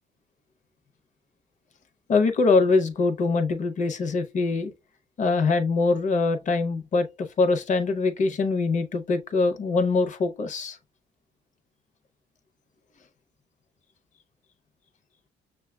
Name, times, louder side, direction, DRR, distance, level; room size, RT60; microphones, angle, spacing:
voice 1, 2.1-4.7 5.2-7.1 7.4-10.8, left 3 dB, 40° left, 0.7 m, -23 dB
6.5 x 2.3 x 2.2 m
cardioid pair, 155°, 20 cm